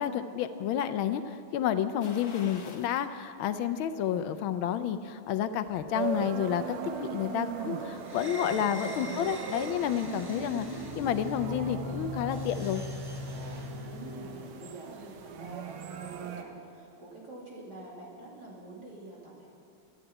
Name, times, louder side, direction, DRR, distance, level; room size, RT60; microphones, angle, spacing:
voice 1, 0.0-12.8, left 9 dB, 75° left, 11 dB, 1.4 m, -30 dB
sound 1, 2.0-3.1 3.5-3.6 5.1-5.9 6.2-6.3, left 4 dB, 50° left, 1.5 m, -48 dB
sound 2, 5.9-16.4, right 6 dB, 75° right, 1.7 m, -39 dB
voice 2, 7.9-8.6 8.8-9.6 13.9-19.5, right 2 dB, 50° right, -4 dB, 3.3 m, -47 dB
sound 3, 8.0-14.6, left 1 dB, 15° right, 0.8 m, -40 dB
13.5 x 9.9 x 8.9 m, 2.6 s
omnidirectional pair, 2.3 m